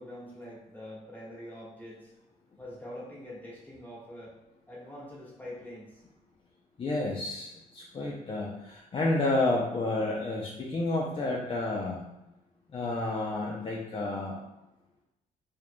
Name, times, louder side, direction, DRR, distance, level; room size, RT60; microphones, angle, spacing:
voice 1, 0.0-2.1 2.6-4.4 4.7-6.0, left 1 dB, 10° left, -6 dB, 1.5 m, -44 dB
voice 2, 6.8-12.0 12.7-14.4, left 2 dB, 40° left, -3 dB, 0.6 m, -30 dB
4.4 x 3.1 x 2.2 m, 0.95 s
cardioid pair, 90°, 15 cm